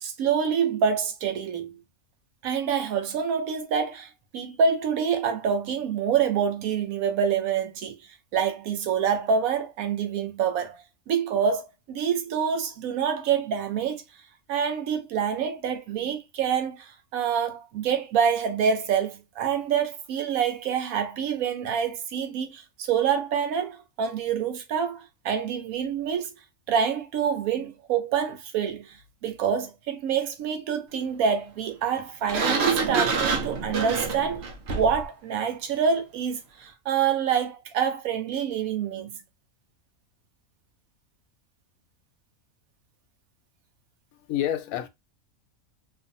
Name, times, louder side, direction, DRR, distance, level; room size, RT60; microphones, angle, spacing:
voice 1, 0.0-1.8 2.4-8.0 8.3-14.0 14.5-26.3 26.7-29.0 29.2-34.5 34.8-39.2, right 7 dB, 90° right, 1.1 m, -26 dB
Sliding door, 32.3-35.1, right 4 dB, 60° right, 0.7 m, -27 dB
voice 2, 44.1-44.9, left 11 dB, 85° left, 1.0 m, -28 dB
2.6 x 2.5 x 2.6 m
omnidirectional pair, 1.4 m